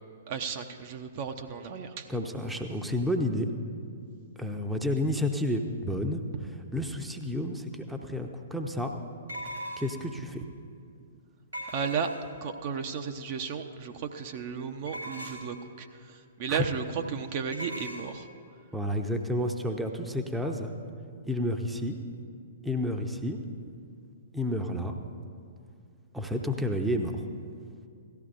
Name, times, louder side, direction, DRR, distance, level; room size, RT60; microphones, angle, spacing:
voice 1, 0.3-2.2 11.7-12.1 12.4-18.3, right 6 dB, 45° right, 6 dB, 0.6 m, -34 dB
voice 2, 2.1-3.5 4.4-6.2 6.7-8.9 9.8-10.4 16.5-16.6 18.7-20.7 21.3-22.0 22.6-23.4 24.3-24.9 26.1-27.2, left 1 dB, 5° right, 4 dB, 0.7 m, -30 dB
sound 1, 7.7-7.8 9.3-10.1 11.5-12.4 14.9-15.6 17.5-18.0, equal, 85° right, 3.6 m, -39 dB
17.0 x 13.5 x 2.5 m, 2.4 s
figure-of-eight pair, 115°, 0 cm